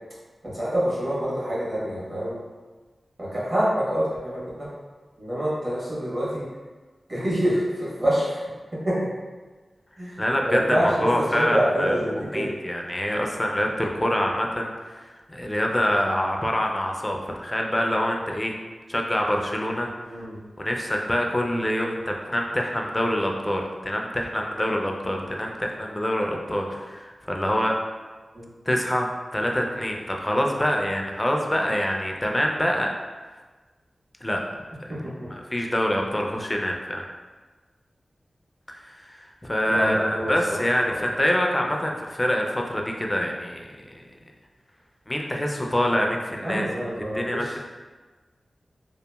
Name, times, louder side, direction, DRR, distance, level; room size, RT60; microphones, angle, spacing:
voice 1, 0.4-2.4 3.2-4.7 5.2-6.4 7.1-8.4 8.8-9.1 10.0-12.5 20.0-20.4 28.3-28.5 35.0-35.1 39.7-41.1 46.4-47.5, equal, 50° right, -8 dB, 1.1 m, -26 dB
voice 2, 10.2-18.5 18.9-19.9 20.6-27.8 28.7-32.9 34.2-34.4 34.8-34.9 35.3-37.0 38.7-43.8 45.1-46.7 46.9-47.6, equal, 20° left, 1 dB, 0.4 m, -25 dB
2.8 x 2.4 x 2.2 m, 1.4 s
wide cardioid pair, 60°, 0 cm